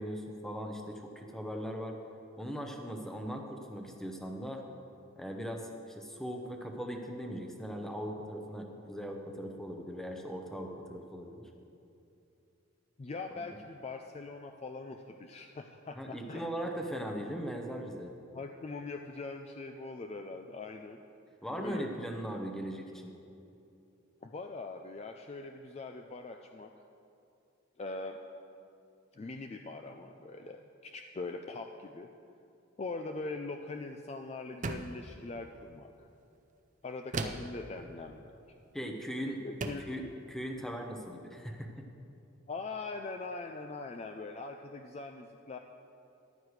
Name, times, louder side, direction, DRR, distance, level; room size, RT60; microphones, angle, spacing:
voice 1, 0.0-1.9 2.4-4.6 5.1-11.5 16.0-18.1 21.4-23.1 38.7-39.4 39.9-41.8, equal, ahead, 2 dB, 0.8 m, -39 dB
voice 2, 13.0-16.5 18.3-21.0 21.6-21.8 24.2-26.7 27.8-28.2 29.1-32.1 32.8-36.1 36.8-38.3 39.4-39.9 42.5-45.6, left 3 dB, 30° left, 4 dB, 0.3 m, -42 dB
sound 1, 34.6-35.0 37.1-37.6 38.9-39.0 39.6-39.9, right 3 dB, 35° right, 0.5 m, -36 dB
14.0 x 11.5 x 3.2 m, 2.7 s
head